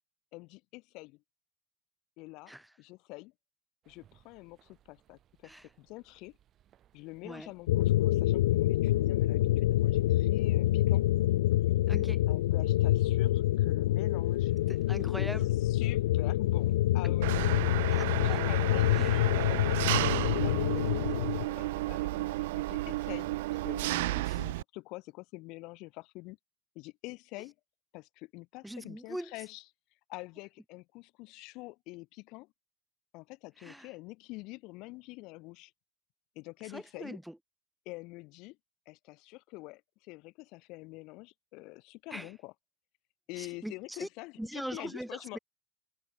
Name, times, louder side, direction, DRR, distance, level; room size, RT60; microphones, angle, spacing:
voice 1, 0.3-1.2 2.2-2.5 2.8-3.3 3.9-6.4 6.9-11.1 12.3-14.5 15.2-15.3 15.6-23.3 23.6-26.4 26.7-27.5 27.9-29.6 30.1-32.5 33.1-35.7 36.3-37.2 37.8-38.6 38.9-42.5 43.3-45.4, left 23 dB, 65° left, 2.9 m, -46 dB
sound 1, 3.8-21.2, right 11 dB, 45° right, 5.4 m, -66 dB
sound 2, 7.7-21.5, left 15 dB, 85° left, 0.4 m, -27 dB
voice 2, 11.9-12.2 14.7-15.5 17.0-17.1 17.9-18.5 18.9-19.3 24.2-24.4 28.6-29.3 33.6-33.9 36.7-37.4 42.1-42.3 43.4-44.1 44.4-45.4, right 1 dB, 5° right, 0.8 m, -41 dB
Engine, 17.2-24.6, right 19 dB, 80° right, 0.4 m, -32 dB
hypercardioid pair, 90°, 0 cm